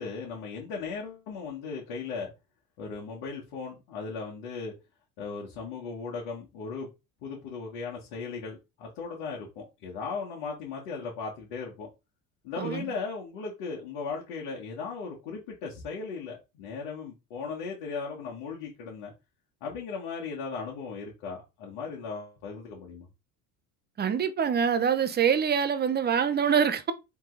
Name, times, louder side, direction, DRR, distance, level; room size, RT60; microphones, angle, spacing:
voice 1, 0.0-2.3 2.8-4.7 5.2-6.9 7.2-11.9 12.4-19.1 19.6-23.1, left 5 dB, 70° left, 1.5 m, -37 dB
voice 2, 24.0-26.9, right 7 dB, 25° right, 0.7 m, -25 dB
3.8 x 2.9 x 3.8 m
hypercardioid pair, 75°, 43 cm